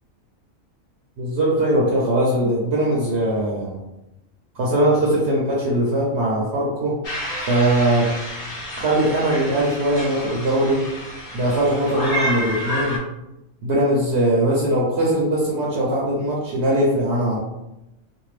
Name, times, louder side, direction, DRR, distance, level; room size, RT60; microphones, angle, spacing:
voice 1, 1.2-3.8 4.5-7.0 7.5-8.1 8.8-10.9 11.3-13.0 13.6-17.4, right 1 dB, 65° right, -4 dB, 0.8 m, -20 dB
sound 1, 7.0-13.0, equal, 50° left, 0.8 m, -30 dB
2.7 x 2.1 x 3.1 m, 0.93 s
omnidirectional pair, 1.4 m